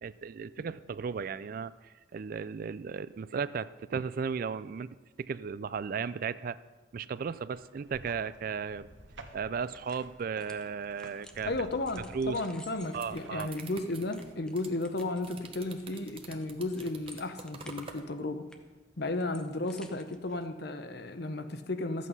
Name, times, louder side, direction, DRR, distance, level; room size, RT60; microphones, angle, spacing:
voice 1, 0.0-4.9 5.2-6.6 6.9-8.9 9.3-11.5 12.1-12.4 12.9-13.5, right 6 dB, 50° right, 16 dB, 0.3 m, -35 dB
sound 1, 7.5-13.6, right 2 dB, 70° right, 1.1 m, -52 dB
sound 2, 9.6-20.5, left 1 dB, 5° left, 0.7 m, -57 dB
voice 2, 11.4-18.5 19.0-22.1, left 2 dB, 55° left, 9 dB, 0.8 m, -34 dB
sound 3, 12.9-18.1, right 3 dB, 30° right, 1.0 m, -48 dB
13.0 x 8.4 x 5.4 m, 1.3 s
head